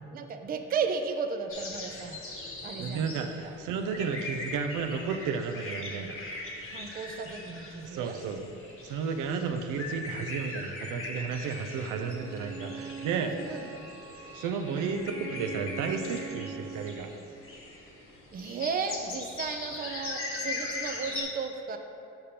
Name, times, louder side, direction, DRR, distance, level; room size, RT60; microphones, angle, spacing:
voice 1, 0.1-2.2 2.6-3.5 6.7-8.2 9.3-9.6 13.2-13.9 14.7-15.0 18.3-21.8, right 5 dB, 30° right, 7 dB, 0.4 m, -35 dB
sound 1, 1.5-21.2, left 2 dB, 45° left, 1.0 m, -40 dB
voice 2, 2.8-6.2 7.9-8.4 8.8-13.4 14.3-17.1, right 5 dB, 85° right, 6 dB, 0.5 m, -33 dB
Bowed string instrument, 11.7-17.1, right 6 dB, 50° right, 1.1 m, -44 dB
6.7 x 5.1 x 2.9 m, 2.8 s
cardioid pair, 90°, 30 cm